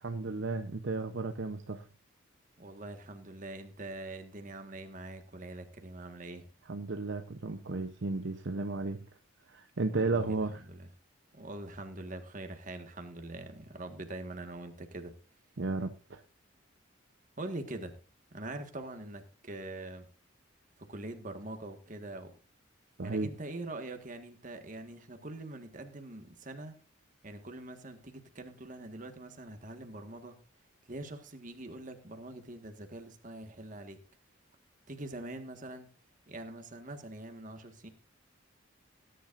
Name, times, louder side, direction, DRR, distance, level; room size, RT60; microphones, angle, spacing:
voice 1, 0.0-1.8 6.7-9.0 9.5-10.6 15.6-16.2 23.0-23.3, right 3 dB, 60° right, 7 dB, 0.8 m, -34 dB
voice 2, 2.6-6.5 9.9-10.9 11.3-15.1 17.4-18.0 18.3-20.1 20.8-22.3 23.0-26.8 27.2-30.3 30.9-34.0 34.9-35.9 36.3-37.9, right 2 dB, 40° right, 6 dB, 1.6 m, -43 dB
18.5 x 10.5 x 2.5 m, 0.35 s
head